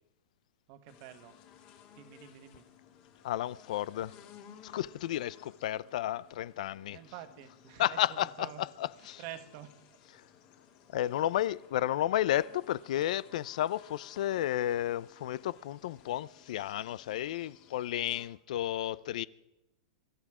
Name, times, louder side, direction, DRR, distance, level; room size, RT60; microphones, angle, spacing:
voice 1, 0.7-1.3 1.9-2.6 6.9-8.6 9.2-9.7, right 12 dB, 40° right, 1.5 m, -47 dB
sound 1, 0.9-18.3, left 8 dB, 35° left, 2.2 m, -58 dB
voice 2, 3.2-4.2 4.6-7.0 7.8-9.2 10.9-19.2, left 13 dB, 60° left, 0.5 m, -32 dB
23.5 x 11.5 x 4.9 m
supercardioid pair, 155°, 4 cm